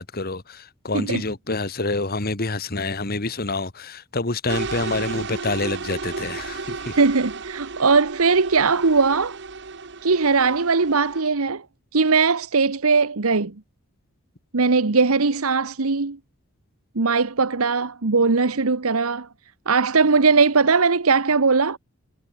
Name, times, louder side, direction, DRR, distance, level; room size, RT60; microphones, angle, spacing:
voice 1, 0.0-7.0, left 3 dB, 45° left, 1.8 m, -27 dB
sound 1, 4.5-11.2, right 4 dB, 55° right, 1.2 m, -33 dB
voice 2, 7.0-9.4 10.0-11.6 11.9-13.5 14.5-16.2 16.9-19.3 19.7-21.8, right 4 dB, 80° right, 1.1 m, -19 dB
head